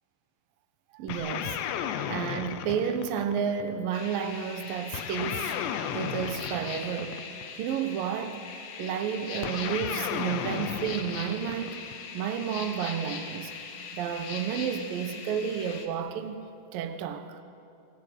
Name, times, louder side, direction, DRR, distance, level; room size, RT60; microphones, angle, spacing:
voice 1, 0.9-5.6 5.9-7.2 7.6-8.4 8.8-11.9 12.1-13.5 13.9-16.4 16.7-17.4, right 8 dB, 65° right, 8 dB, 2.4 m, -31 dB
sound 1, 1.1-3.7 4.9-7.5 9.4-12.0, left 9 dB, 80° left, 3.2 m, -34 dB
sound 2, 3.9-15.9, left 5 dB, 55° left, 3.3 m, -41 dB
27.5 x 19.5 x 8.2 m, 2.7 s
omnidirectional pair, 5.2 m